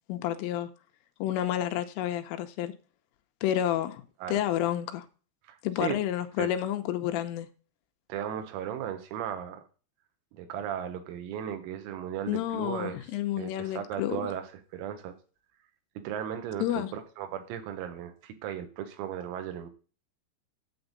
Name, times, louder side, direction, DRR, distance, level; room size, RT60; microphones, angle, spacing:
voice 1, 0.1-0.7 1.2-2.7 3.4-4.0 4.3-5.1 5.6-7.5 12.3-14.2 16.6-16.9, left 12 dB, 85° left, 3.2 m, -30 dB
voice 2, 5.5-6.0 6.4-6.5 8.1-9.7 10.3-13.0 13.4-15.2 16.0-19.7, right 10 dB, 90° right, 4.1 m, -36 dB
9.7 x 8.1 x 4.0 m
omnidirectional pair, 5.9 m